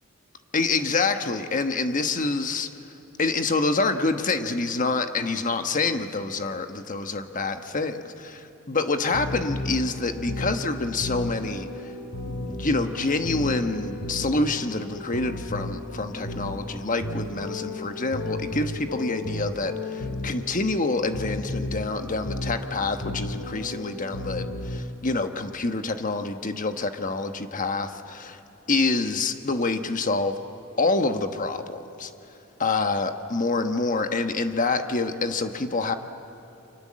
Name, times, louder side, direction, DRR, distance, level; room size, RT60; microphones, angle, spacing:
voice 1, 0.5-2.7 3.2-11.9 12.3-28.4 28.7-30.4 30.8-32.1 32.6-35.9, left 3 dB, 35° left, 7 dB, 1.2 m, -27 dB
sound 1, 8.9-24.8, left 1 dB, 85° left, 2.8 m, -34 dB
29.5 x 25.5 x 7.6 m, 3.0 s
head